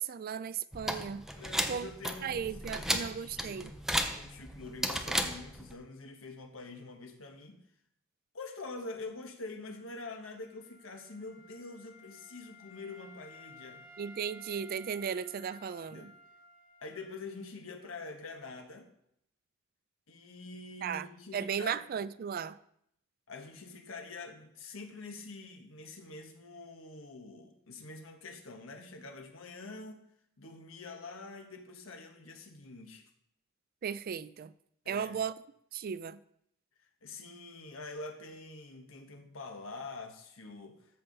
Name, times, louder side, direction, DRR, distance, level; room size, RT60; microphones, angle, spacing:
voice 1, 0.0-1.3 1.7-1.9 2.2-3.7 14.0-16.1 20.8-21.1 21.3-22.6 33.8-34.5 34.9-35.3 35.7-36.2, right 7 dB, 45° right, 0.3 m, -36 dB
sound 1, 0.7-5.7, equal, ahead, 0.6 m, -35 dB
voice 2, 1.3-3.7 4.0-7.6 8.3-13.8 15.9-16.1 16.8-18.9 20.1-21.8 23.3-30.0 30.4-33.0 34.8-35.2 37.0-40.8, left 3 dB, 80° left, 1.2 m, -46 dB
Wind instrument woodwind instrument, 9.6-17.4, left 1 dB, 40° left, 3.2 m, -56 dB
13.5 x 5.5 x 4.0 m
head